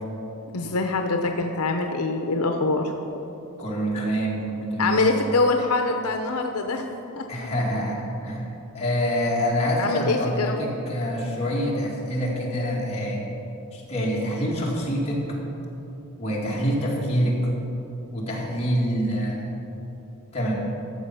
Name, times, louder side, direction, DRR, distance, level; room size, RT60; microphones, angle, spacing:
voice 1, 0.5-2.9 4.8-6.8 7.2-7.3 9.8-10.6, left 3 dB, 80° left, 5 dB, 0.7 m, -24 dB
voice 2, 3.6-5.1 7.3-8.5 8.7-13.2 13.7-15.2 15.5-15.7 16.2-17.4 18.1-19.6 20.3-20.6, equal, 30° left, -4 dB, 2.2 m, -26 dB
13.5 x 7.3 x 5.6 m, 3.0 s
head